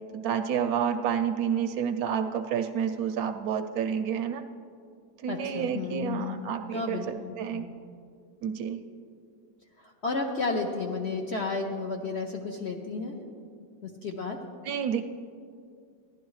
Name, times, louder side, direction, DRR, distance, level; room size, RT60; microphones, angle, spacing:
voice 1, 0.2-4.4 5.2-7.7 8.4-8.8 14.6-15.0, right 8 dB, 70° right, 8 dB, 0.9 m, -29 dB
voice 2, 5.3-6.4 6.7-7.7 9.8-13.2 13.8-14.4, left 3 dB, 60° left, 1 dB, 0.7 m, -32 dB
15.5 x 11.5 x 3.2 m, 2.3 s
omnidirectional pair, 1.9 m